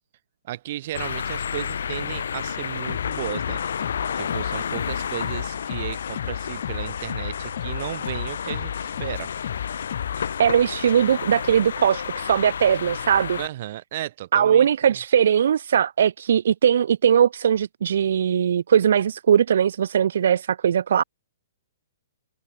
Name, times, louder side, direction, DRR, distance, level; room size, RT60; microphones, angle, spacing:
voice 1, 0.4-3.6 4.1-9.3 13.4-15.0, right 14 dB, 35° right, 4.0 m, -34 dB
sound 1, 0.9-13.5, left 7 dB, 70° left, 4.7 m, -31 dB
sound 2, 2.9-10.4, left 11 dB, 45° left, 1.9 m, -34 dB
voice 2, 10.2-13.4 14.3-21.0, right 8 dB, 55° right, 0.4 m, -20 dB
hypercardioid pair, 180°, 0 cm